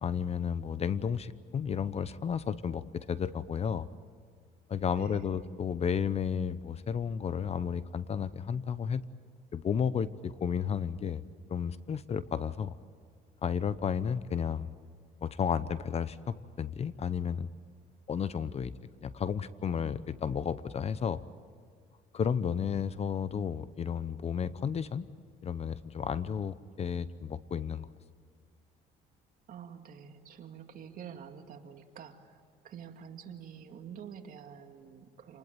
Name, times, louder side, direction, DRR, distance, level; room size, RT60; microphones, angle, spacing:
voice 1, 0.0-3.9 4.7-9.0 9.5-11.2 11.5-12.7 13.4-14.7 15.2-17.5 18.1-18.7 19.0-21.2 22.1-25.1 25.4-27.9, left 7 dB, 40° left, 16 dB, 0.8 m, -32 dB
voice 2, 5.0-5.4 29.5-35.4, right 8 dB, 55° right, 5 dB, 2.4 m, -47 dB
28.0 x 20.0 x 9.1 m, 2.1 s
cardioid pair, 110°, 17 cm